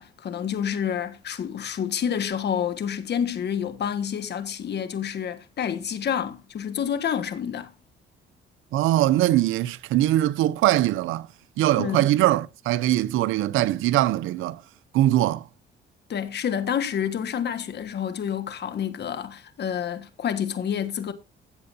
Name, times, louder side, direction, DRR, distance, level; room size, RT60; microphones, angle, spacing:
voice 1, 0.0-7.7 11.8-12.0 16.1-21.1, left 8 dB, 60° left, 1.5 m, -28 dB
voice 2, 8.7-11.3 11.6-14.6 14.9-15.5, right 14 dB, 90° right, 0.5 m, -22 dB
15.0 x 7.9 x 2.7 m
cardioid pair, 90°, 20 cm